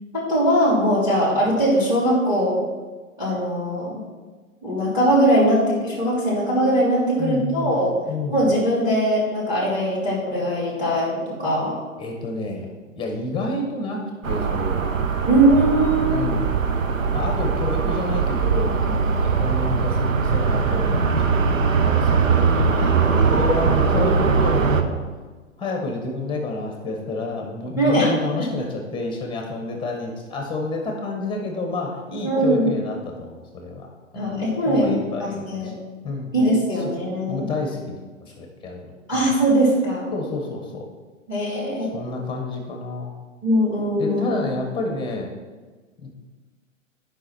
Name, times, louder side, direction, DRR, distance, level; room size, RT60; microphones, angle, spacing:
voice 1, 0.1-2.6 3.2-4.0 4.6-7.9 8.3-11.7 15.3-16.3 22.8-23.3 27.8-28.5 32.2-32.7 34.1-34.9 35.2-35.7 36.3-37.4 39.1-40.1 41.3-41.9 43.4-44.2, right 1 dB, 10° right, -6 dB, 3.1 m, -21 dB
voice 2, 7.2-7.8 8.1-8.4 12.0-12.7 12.9-14.9 16.1-16.6 17.1-21.2 21.7-22.5 23.2-25.0 25.6-33.9 34.1-35.7 36.0-36.3 37.3-38.0 38.2-39.3 40.1-40.8 41.9-43.1 44.0-45.3 46.0-46.1, left 2 dB, 10° left, 1 dB, 1.5 m, -29 dB
sound 1, 14.2-24.8, right 5 dB, 75° right, 1.0 m, -21 dB
10.5 x 5.6 x 4.4 m, 1.3 s
figure-of-eight pair, 115°, 39 cm